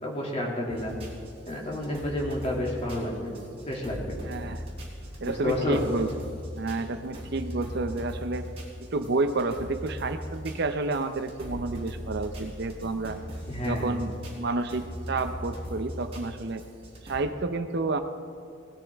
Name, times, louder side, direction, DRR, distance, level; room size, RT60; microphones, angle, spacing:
voice 1, 0.0-0.9 1.5-3.2 3.7-4.2 5.2-5.8 13.5-13.9, left 1 dB, 30° left, -2 dB, 2.4 m, -30 dB
sound 1, 0.7-17.2, equal, 30° right, 3.3 m, -40 dB
voice 2, 4.2-4.6 5.2-6.3 6.6-8.5 8.9-13.2 13.6-16.6 17.1-18.0, right 3 dB, 55° right, 9 dB, 0.6 m, -30 dB
19.0 x 13.0 x 3.5 m, 2.3 s
head